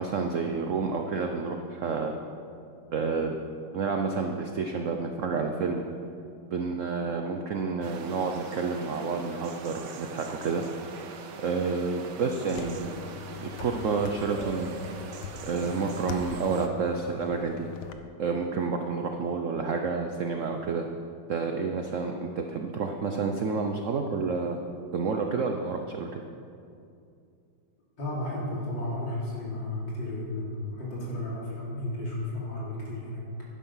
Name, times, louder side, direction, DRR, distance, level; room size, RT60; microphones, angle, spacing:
voice 1, 0.0-2.1 2.9-3.3 3.7-5.8 6.5-10.6 11.4-12.9 13.4-14.7 15.4-17.7 18.2-20.9 21.3-24.6 24.9-26.2, right 4 dB, 85° right, 4 dB, 0.6 m, -29 dB
sound 1, 7.8-16.7, right 5 dB, 65° right, 1.4 m, -43 dB
sound 2, 12.5-17.9, left 7 dB, 80° left, 1.6 m, -41 dB
voice 2, 28.0-33.2, left 1 dB, 60° left, -6 dB, 3.9 m, -33 dB
11.5 x 10.5 x 5.6 m, 2.5 s
omnidirectional pair, 2.2 m